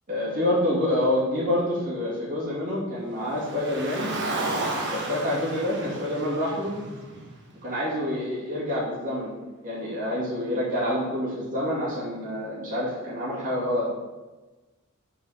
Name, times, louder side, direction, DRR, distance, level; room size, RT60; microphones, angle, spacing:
voice 1, 0.1-4.1 4.9-6.8 7.6-9.3 9.6-13.9, left 1 dB, 40° right, -8 dB, 2.3 m, -27 dB
Car, 3.3-7.7, right 2 dB, 60° right, 1.1 m, -33 dB
5.7 x 4.8 x 5.6 m, 1.2 s
head